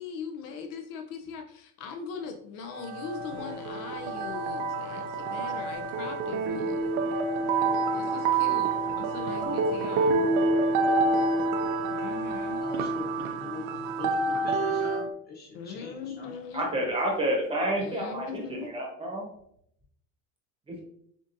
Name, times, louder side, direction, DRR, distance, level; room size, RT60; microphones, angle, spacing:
voice 1, 0.0-7.1 7.9-10.2 11.8-12.6 15.5-16.7 17.8-18.7, left 5 dB, 60° left, 4 dB, 0.6 m, -40 dB
sound 1, 2.7-15.1, right 3 dB, 70° right, 0.6 m, -28 dB
voice 2, 12.6-16.4, left 4 dB, 25° left, -1 dB, 1.1 m, -43 dB
voice 3, 16.5-19.3 20.7-20.8, right 1 dB, 15° right, -1 dB, 1.0 m, -29 dB
7.1 x 2.6 x 2.6 m, 0.70 s
cardioid pair, 165°, 36 cm